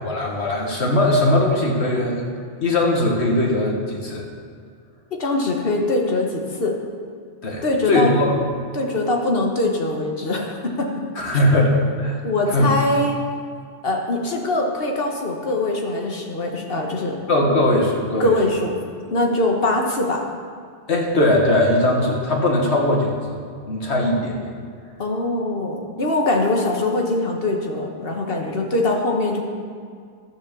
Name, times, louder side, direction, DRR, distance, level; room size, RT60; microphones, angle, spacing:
voice 1, 0.0-2.2 2.6-4.3 7.4-8.3 11.2-12.2 12.5-12.7 17.3-18.3 20.9-23.4 23.7-24.5, left 1 dB, 75° left, -1 dB, 2.0 m, -20 dB
voice 2, 5.1-6.8 7.6-8.1 8.7-11.0 11.3-11.4 12.2-13.2 13.8-17.2 18.2-18.7 19.1-20.2 25.0-29.4, left 2 dB, 60° left, 1 dB, 1.6 m, -22 dB
11.5 x 7.4 x 7.0 m, 2.1 s
omnidirectional pair, 1.1 m